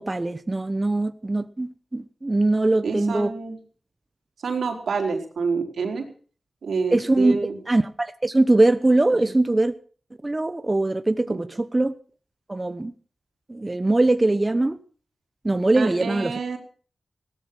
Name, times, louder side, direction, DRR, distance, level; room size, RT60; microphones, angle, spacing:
voice 1, 0.0-3.3 6.9-7.4 7.7-9.7 10.2-12.0 12.5-12.9 13.5-14.8 15.4-16.3, right 2 dB, 30° right, 11 dB, 1.0 m, -21 dB
voice 2, 2.8-3.6 4.4-6.1 6.6-7.6 11.3-11.4 15.7-16.6, right 4 dB, 85° right, 3 dB, 3.9 m, -27 dB
17.0 x 13.5 x 6.2 m, 0.42 s
cardioid pair, 60°, 0 cm